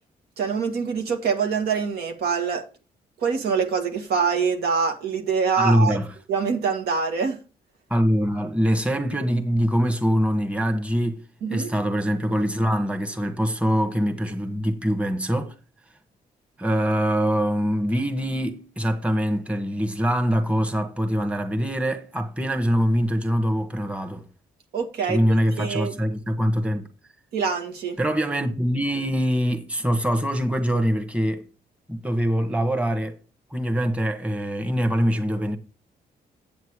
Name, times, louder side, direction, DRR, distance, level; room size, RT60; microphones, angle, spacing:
voice 1, 0.4-2.6 3.2-6.0 6.3-7.4 11.4-11.7 24.7-25.2 25.6-25.9 27.3-28.0, right 6 dB, 85° right, 1.9 m, -24 dB
voice 2, 5.6-6.1 7.9-11.2 11.5-15.5 16.6-24.2 25.1-26.8 28.0-31.4 31.9-33.2 33.5-35.6, equal, 10° right, 1.6 m, -23 dB
8.3 x 6.8 x 4.9 m
cardioid pair, 85°, 16 cm